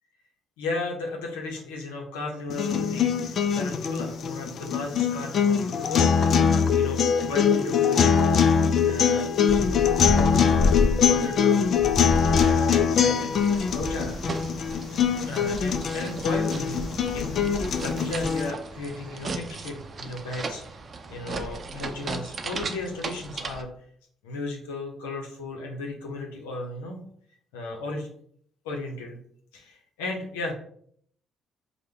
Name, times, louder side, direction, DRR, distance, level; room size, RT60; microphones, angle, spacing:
voice 1, 0.6-6.2 6.8-7.0 7.3-8.5 8.8-11.9 12.2-14.2 15.2-16.9 17.1-20.8 21.1-23.7 24.2-27.0 27.5-28.1 28.6-29.2 29.5-30.5, left 2 dB, 85° left, 1 dB, 0.7 m, -35 dB
sound 1, 2.5-18.5, left 7 dB, 60° left, 0.3 m, -23 dB
sound 2, 9.5-14.5, left 3 dB, 25° left, 0.8 m, -30 dB
sound 3, 13.3-23.6, right 3 dB, 45° right, 0.5 m, -36 dB
5.0 x 2.2 x 3.4 m, 0.62 s
hypercardioid pair, 50°, 0 cm